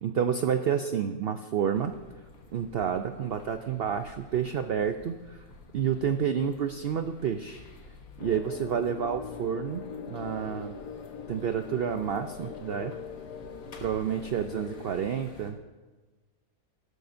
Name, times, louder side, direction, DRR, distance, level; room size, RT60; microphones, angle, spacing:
voice 1, 0.0-1.9 2.5-5.4 5.7-7.6 8.2-9.8 10.1-10.7 11.3-12.9 13.8-15.6, right 8 dB, 90° right, 8 dB, 0.5 m, -29 dB
sound 1, 1.7-15.5, left 3 dB, 65° left, 1.7 m, -51 dB
sound 2, 8.2-14.9, left 6 dB, 85° left, 1.4 m, -41 dB
15.5 x 13.0 x 2.6 m, 1.3 s
omnidirectional pair, 1.6 m